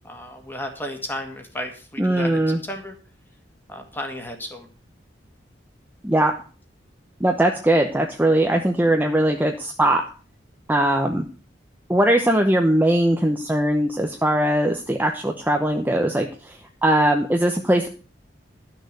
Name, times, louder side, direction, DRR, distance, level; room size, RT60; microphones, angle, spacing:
voice 1, 0.0-3.0 3.7-4.7, left 1 dB, 10° left, 4 dB, 1.9 m, -33 dB
voice 2, 2.0-2.6 6.0-6.3 7.2-10.0 10.7-11.2 11.9-16.6 16.8-17.9, right 1 dB, 10° right, 2 dB, 0.8 m, -20 dB
12.5 x 6.5 x 6.7 m, 0.38 s
head